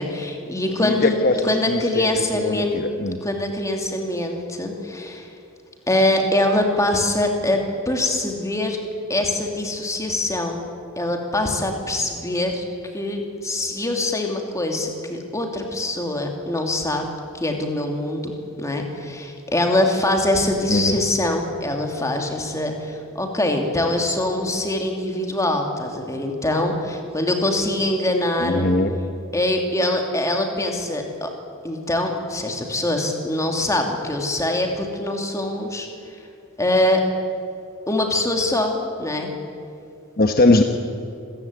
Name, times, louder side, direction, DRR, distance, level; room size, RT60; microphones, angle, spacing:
voice 1, 0.0-1.2 1.4-2.8 3.2-5.3 5.9-8.8 9.1-10.6 11.0-12.6 12.9-17.0 17.4-28.7 29.3-31.3 31.6-35.9 36.6-37.0 37.9-38.7 39.0-39.3, left 1 dB, 15° left, 3 dB, 2.6 m, -23 dB
voice 2, 0.8-3.2 20.7-21.0 28.4-28.9 40.2-40.6, left 2 dB, 45° left, 5 dB, 1.1 m, -20 dB
26.5 x 15.0 x 9.6 m, 2.5 s
head